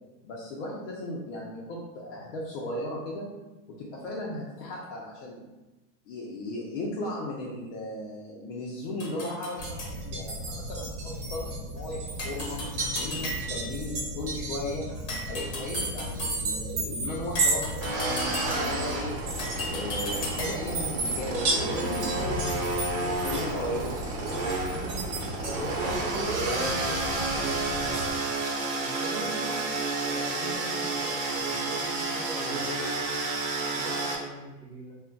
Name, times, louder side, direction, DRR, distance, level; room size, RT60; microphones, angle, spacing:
voice 1, 0.2-3.3 3.7-5.4 6.1-12.6 12.9-14.9 15.3-19.1 19.7-23.9, left 1 dB, 55° left, -4 dB, 0.5 m, -36 dB
sound 1, 9.0-9.9 12.2-13.7 15.1-16.4 17.3-18.9 19.4-20.8, left 1 dB, 30° left, 0.9 m, -36 dB
sound 2, 9.6-28.1, right 2 dB, 60° right, 1.0 m, -33 dB
sound 3, 17.8-34.2, right 3 dB, 85° right, 0.8 m, -31 dB
voice 2, 24.7-25.1 25.4-28.1 28.8-33.0 33.7-35.0, right 1 dB, 15° right, -9 dB, 0.6 m, -41 dB
2.2 x 2.1 x 3.7 m, 1.1 s
supercardioid pair, 175°, 39 cm